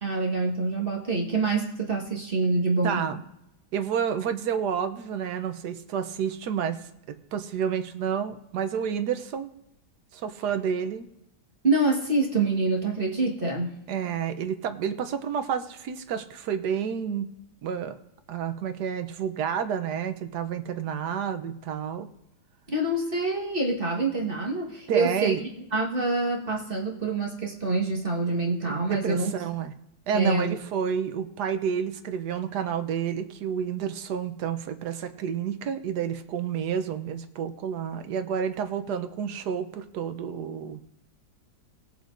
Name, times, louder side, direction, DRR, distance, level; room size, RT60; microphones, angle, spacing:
voice 1, 0.0-3.1 11.6-13.7 22.7-25.3 25.7-29.3 30.1-30.6, right 3 dB, 35° right, -2 dB, 1.6 m, -26 dB
voice 2, 2.8-3.2 3.7-6.8 7.1-9.5 10.1-11.1 13.9-17.3 17.6-18.0 18.3-22.1 24.9-25.4 28.7-29.7 30.1-40.8, right 7 dB, 80° right, 9 dB, 1.3 m, -30 dB
19.5 x 7.2 x 2.6 m, 0.84 s
omnidirectional pair, 1.8 m